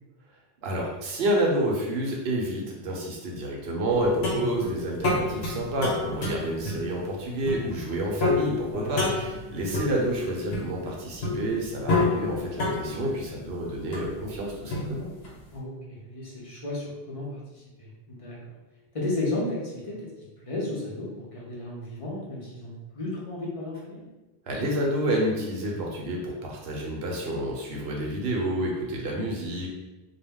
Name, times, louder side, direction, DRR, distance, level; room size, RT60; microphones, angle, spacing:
voice 1, 0.6-15.1 24.5-29.7, right 1 dB, 80° right, -2 dB, 0.9 m, -29 dB
sound 1, 3.9-15.4, left 2 dB, 80° left, 1.0 m, -30 dB
voice 2, 8.7-9.2 15.5-18.4 18.9-20.0 20.4-24.1, left 2 dB, 40° left, -5 dB, 0.6 m, -34 dB
2.2 x 2.1 x 3.4 m, 1.1 s
omnidirectional pair, 1.0 m